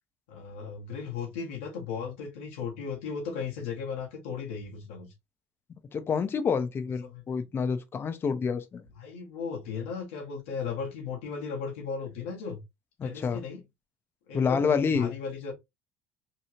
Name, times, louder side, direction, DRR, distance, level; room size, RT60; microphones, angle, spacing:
voice 1, 0.3-5.1 7.1-7.5 9.0-12.6 13.0-13.6 14.3-15.5, left 6 dB, 80° left, 0.9 m, -36 dB
voice 2, 5.9-8.8 13.0-13.4 14.3-15.1, left 5 dB, 35° left, 0.5 m, -28 dB
2.9 x 2.3 x 2.9 m
hypercardioid pair, 70°, 7 cm